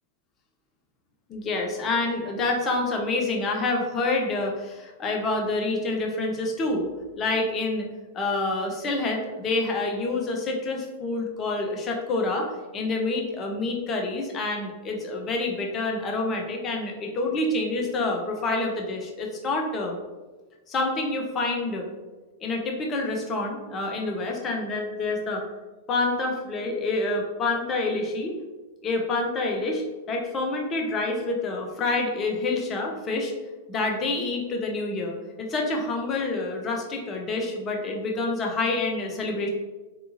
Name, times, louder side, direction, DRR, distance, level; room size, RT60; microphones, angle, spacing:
voice 1, 1.3-6.9 7.2-7.9 8.1-20.0 20.7-21.9 22.4-25.4 25.9-28.4 28.8-33.3 33.7-39.5, left 2 dB, 25° left, 1 dB, 0.6 m, -27 dB
3.5 x 2.7 x 2.6 m, 1.2 s
figure-of-eight pair, 95°, 0 cm